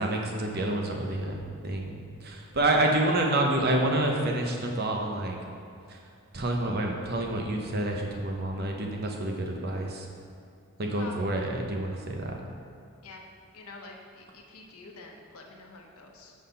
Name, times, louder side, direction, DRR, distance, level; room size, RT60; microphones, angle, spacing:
voice 1, 0.0-1.4 1.6-5.4 5.9-6.0 6.3-10.1 10.8-12.4, right 1 dB, 45° right, 1 dB, 0.8 m, -28 dB
voice 2, 13.5-16.3, left 3 dB, 80° left, 1 dB, 1.0 m, -46 dB
6.3 x 5.6 x 5.5 m, 2.5 s
head